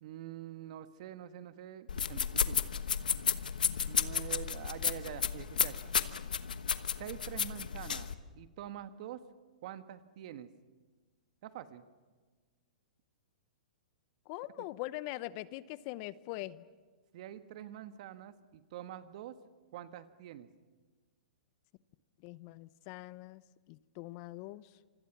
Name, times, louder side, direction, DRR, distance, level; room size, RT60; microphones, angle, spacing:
voice 1, 0.0-2.6 3.9-5.9 7.0-8.1 8.3-9.2 9.6-10.5 11.4-11.8 14.6-14.7 17.1-19.4 19.7-20.5, right 11 dB, 55° right, 10 dB, 1.5 m, -45 dB
sound 1, 1.9-8.1, left 7 dB, 85° left, 1.2 m, -33 dB
voice 2, 14.3-16.6 22.2-23.4 23.7-24.6, left 17 dB, 40° left, 17 dB, 0.8 m, -42 dB
27.0 x 25.0 x 6.1 m, 1.4 s
hypercardioid pair, 125°, 4 cm